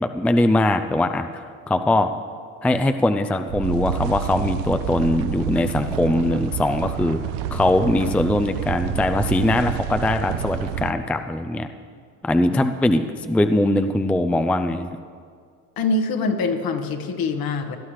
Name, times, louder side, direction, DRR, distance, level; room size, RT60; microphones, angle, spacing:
voice 1, 0.0-2.1 2.6-7.2 7.5-11.7 12.2-15.0, left 1 dB, 5° left, 8 dB, 0.4 m, -21 dB
sound 1, 3.5-10.9, right 9 dB, 80° right, 0.7 m, -28 dB
voice 2, 15.8-17.8, left 3 dB, 55° left, 7 dB, 1.3 m, -24 dB
17.5 x 11.0 x 3.2 m, 2.1 s
supercardioid pair, 70°, 42 cm